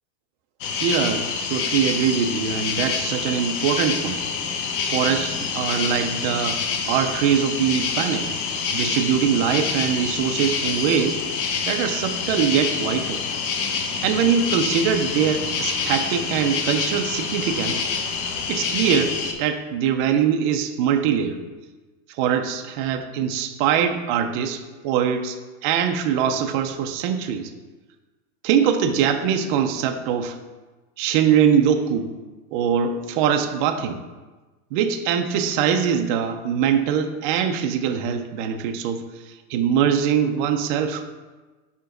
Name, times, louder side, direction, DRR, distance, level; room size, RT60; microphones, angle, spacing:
sound 1, 0.6-19.3, left 5 dB, 55° left, 0.9 m, -27 dB
voice 1, 0.8-4.2 4.8-8.3 8.7-11.2 11.7-13.2 14.0-17.8 18.5-21.4 22.2-25.4 25.6-27.5 28.4-30.4 31.0-32.1 32.5-34.0 34.7-41.1, right 8 dB, 35° right, 7 dB, 0.4 m, -22 dB
5.1 x 4.7 x 4.9 m, 1.2 s
supercardioid pair, 155°, 45 cm